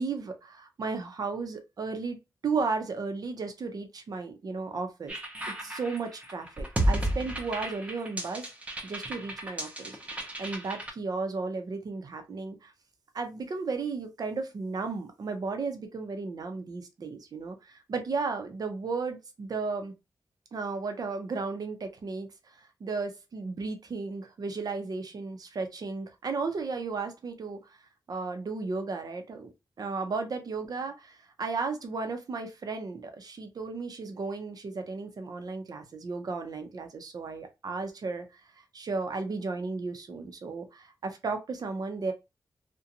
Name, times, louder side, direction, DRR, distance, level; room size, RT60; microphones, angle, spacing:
voice 1, 0.0-2.2 2.4-5.1 5.5-8.5 8.8-12.7 13.1-19.9 20.5-27.6 28.1-29.5 29.8-38.3 38.7-42.1, right 4 dB, 60° right, 0.6 m, -34 dB
sound 1, 5.1-10.9, right 1 dB, 15° right, 0.6 m, -32 dB
2.5 x 2.2 x 2.7 m
wide cardioid pair, 130°, 8 cm